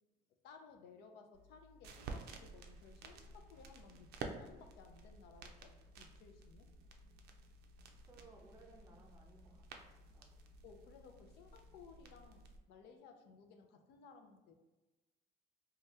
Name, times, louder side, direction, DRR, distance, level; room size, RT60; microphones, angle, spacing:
voice 1, 0.4-6.7 10.6-14.6, left 5 dB, 80° left, 6 dB, 0.4 m, -59 dB
sound 1, 1.3-12.6, right 4 dB, 70° right, 0.4 m, -52 dB
voice 2, 8.1-10.4, right 3 dB, 20° right, 1 dB, 0.5 m, -62 dB
2.7 x 2.2 x 3.2 m, 1.1 s
cardioid pair, 110°, 17 cm